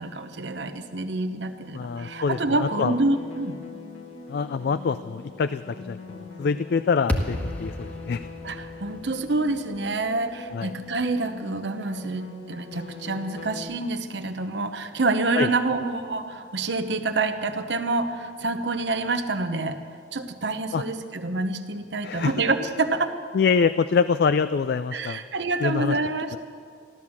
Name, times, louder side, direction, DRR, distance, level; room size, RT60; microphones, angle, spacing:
voice 1, 0.0-3.6 8.4-19.8 20.1-23.1 24.9-26.4, right 3 dB, 70° right, 8 dB, 1.0 m, -27 dB
sound 1, 1.6-13.6, left 4 dB, 90° left, 2.2 m, -42 dB
voice 2, 1.7-2.9 4.3-8.3 10.5-10.7 15.4-15.5 20.7-20.8 22.0-22.3 23.3-25.2 25.6-26.0 26.3-26.4, left 5 dB, 60° left, 13 dB, 0.3 m, -25 dB
sound 2, 7.1-11.4, left 1 dB, 10° left, 1.2 m, -33 dB
15.0 x 12.5 x 7.2 m, 2.2 s
head